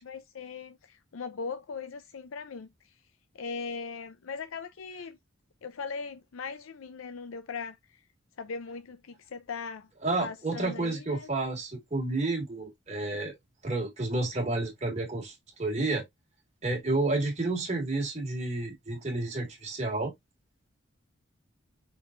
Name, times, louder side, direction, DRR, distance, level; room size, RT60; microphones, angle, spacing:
voice 1, 0.0-3.0 3.3-5.2 5.6-8.0 8.4-9.9 10.2-11.3, left 5 dB, 90° left, 0.5 m, -39 dB
voice 2, 10.0-13.3 13.6-16.1 16.6-20.1, right 2 dB, 35° right, 1.8 m, -30 dB
4.8 x 3.9 x 2.5 m
head